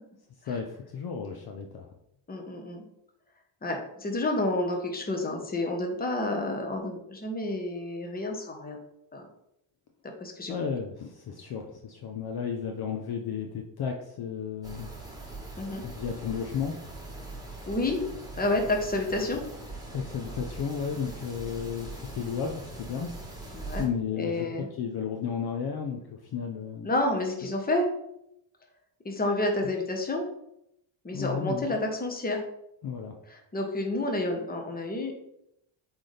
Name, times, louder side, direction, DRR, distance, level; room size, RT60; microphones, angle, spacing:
voice 1, 0.5-1.9 10.5-14.9 15.8-16.7 19.9-23.1 23.8-26.9 31.1-31.8 32.8-33.2, left 6 dB, 50° left, 3 dB, 0.7 m, -33 dB
voice 2, 2.3-2.8 3.6-8.8 9.1-9.3 10.2-10.5 15.6-15.8 17.7-18.0 18.4-19.4 23.5-23.9 24.1-24.7 26.8-27.9 29.0-30.2 31.0-32.4 33.3-35.2, left 2 dB, 20° left, 3 dB, 1.1 m, -29 dB
sound 1, 14.6-23.9, right 2 dB, 10° right, 1.5 m, -41 dB
8.1 x 4.1 x 3.3 m, 0.79 s
cardioid pair, 125°, 49 cm